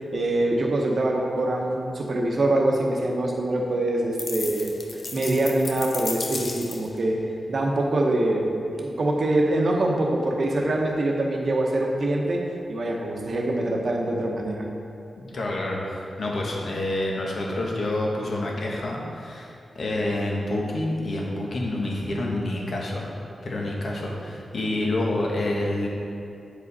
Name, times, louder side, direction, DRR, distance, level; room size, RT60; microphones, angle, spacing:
voice 1, 0.1-7.2 7.5-12.4 12.7-14.6, right 1 dB, 50° right, 0 dB, 1.0 m, -24 dB
sound 1, 4.2-7.0, left 3 dB, 50° left, 0.6 m, -34 dB
voice 2, 15.2-23.1 23.4-25.9, left 1 dB, 65° left, -2 dB, 1.3 m, -28 dB
8.4 x 5.1 x 4.1 m, 2.7 s
wide cardioid pair, 115°, 0 cm